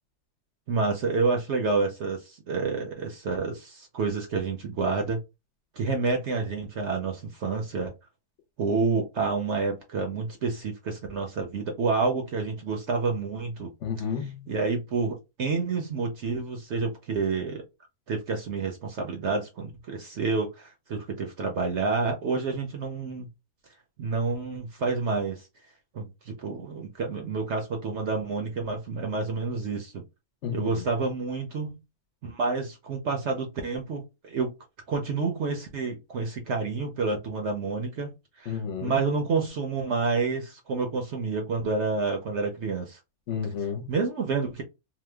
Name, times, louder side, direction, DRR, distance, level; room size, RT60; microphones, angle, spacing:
voice 1, 0.7-5.2 5.8-7.9 8.6-13.7 14.5-17.6 18.1-23.3 24.0-25.5 25.9-30.0 30.5-31.8 32.2-34.5 34.9-43.0 43.9-44.6, right 4 dB, 60° right, 0.8 m, -29 dB
voice 2, 13.8-14.5 30.4-30.8 38.5-39.0 43.3-43.9, left 7 dB, 60° left, 0.9 m, -32 dB
2.9 x 2.1 x 3.2 m
omnidirectional pair, 1.6 m